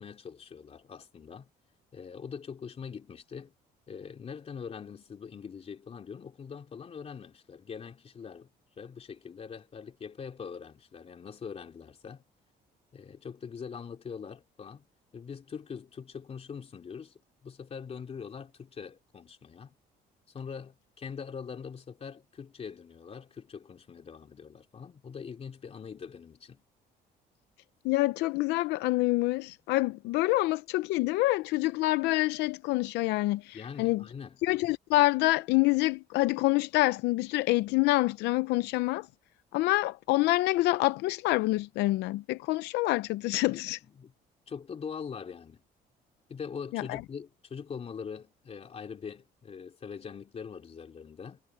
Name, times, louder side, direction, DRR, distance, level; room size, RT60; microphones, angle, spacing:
voice 1, 0.0-1.5 1.9-3.5 3.9-8.5 8.8-12.2 12.9-14.9 15.1-19.7 20.3-26.6 33.5-34.4 43.5-44.1 44.5-45.6 46.3-51.4, left 6 dB, 35° left, 3.0 m, -43 dB
voice 2, 27.8-34.0 34.4-39.1 39.5-43.8 46.7-47.0, left 19 dB, 85° left, 0.6 m, -27 dB
cardioid pair, 110°, 17 cm